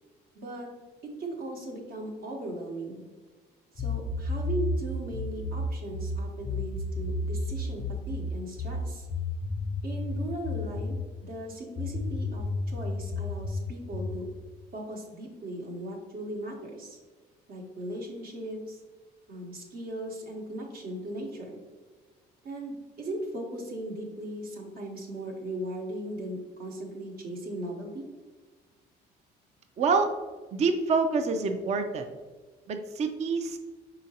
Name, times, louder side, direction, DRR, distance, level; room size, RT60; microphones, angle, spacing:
voice 1, 0.3-0.7 1.0-3.0 3.7-9.1 9.8-14.3 14.7-17.0 17.5-18.8 19.3-21.6 22.4-28.0, right 1 dB, 60° right, 0 dB, 1.0 m, -38 dB
sound 1, 3.8-11.1 11.8-14.2, left 2 dB, 20° left, 0.5 m, -32 dB
voice 2, 29.8-30.1 30.5-32.1 32.7-33.6, right 4 dB, 40° right, 6 dB, 0.4 m, -26 dB
4.9 x 3.8 x 2.8 m, 1.3 s
cardioid pair, 110°, 17 cm